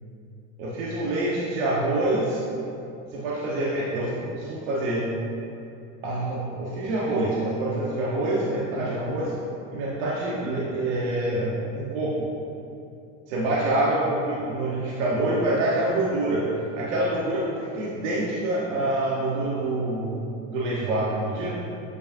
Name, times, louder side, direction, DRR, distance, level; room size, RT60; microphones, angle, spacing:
voice 1, 0.6-2.4 3.1-5.1 6.0-9.3 9.7-12.3 13.3-16.5 16.7-17.5 17.7-20.0 20.5-21.6, right 1 dB, 75° right, -6 dB, 1.3 m, -26 dB
8.2 x 4.7 x 2.7 m, 2.7 s
supercardioid pair, 125°, 38 cm